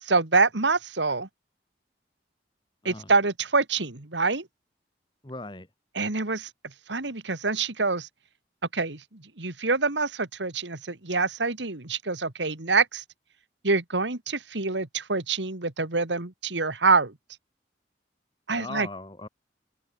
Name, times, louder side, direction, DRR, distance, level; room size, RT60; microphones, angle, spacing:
voice 1, 0.0-1.3 2.8-4.5 6.0-6.5 6.9-8.1 8.7-13.0 13.6-17.1 18.5-18.9, right 4 dB, 85° right, 2.3 m, -26 dB
voice 2, 5.2-5.7 18.5-19.3, left 2 dB, 25° left, 2.0 m, -39 dB
head